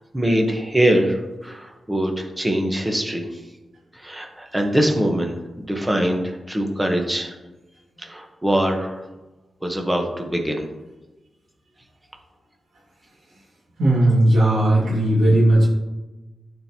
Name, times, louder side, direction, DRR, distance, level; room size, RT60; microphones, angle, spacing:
voice 1, 0.1-3.3 4.0-7.3 8.0-9.0 9.6-10.6, right 1 dB, 10° right, 3 dB, 1.1 m, -23 dB
voice 2, 13.8-15.7, right 1 dB, 85° right, -5 dB, 2.0 m, -16 dB
12.5 x 4.4 x 2.9 m, 1.1 s
wide cardioid pair, 120°, 0 cm